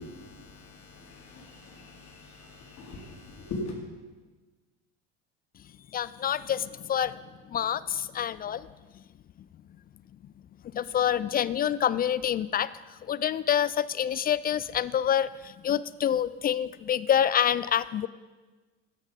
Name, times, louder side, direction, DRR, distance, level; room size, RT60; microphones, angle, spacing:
voice 1, 0.0-3.7, left 2 dB, 50° left, -1 dB, 3.8 m, -41 dB
voice 2, 5.9-7.1 7.5-8.7 10.7-12.7 13.1-18.1, left 9 dB, 30° left, 18 dB, 0.3 m, -27 dB
13.5 x 10.0 x 5.2 m, 1.3 s
hypercardioid pair, 75°, 34 cm